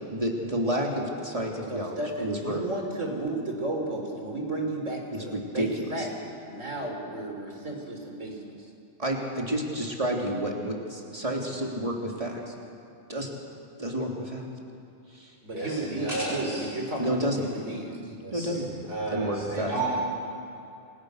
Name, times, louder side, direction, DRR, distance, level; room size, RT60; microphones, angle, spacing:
voice 1, 0.1-2.6 5.1-5.7 6.0-6.1 9.0-12.5 13.1-13.3 13.8-14.4 15.1-15.3 17.0-17.4 18.3-18.6 19.1-19.7, right 1 dB, 25° right, -1 dB, 3.5 m, -30 dB
voice 2, 1.7-6.1 6.4-8.6 15.4-18.1, right 2 dB, 85° right, 2 dB, 4.5 m, -33 dB
voice 3, 15.5-16.6 18.2-19.9, right 2 dB, 55° right, -6 dB, 6.4 m, -32 dB
29.5 x 26.5 x 6.7 m, 2.6 s
omnidirectional pair, 1.3 m